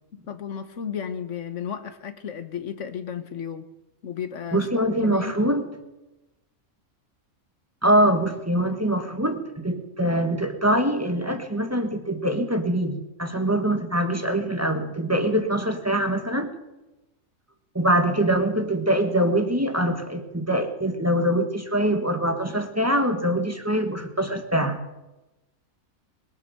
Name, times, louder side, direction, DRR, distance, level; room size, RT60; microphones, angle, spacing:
voice 1, 0.3-3.7 4.0-5.5, left 7 dB, 60° left, 10 dB, 1.4 m, -34 dB
voice 2, 4.5-5.6 7.8-16.5 17.7-24.8, right 1 dB, 10° right, 6 dB, 1.2 m, -23 dB
21.5 x 8.3 x 6.6 m, 1.0 s
omnidirectional pair, 1.5 m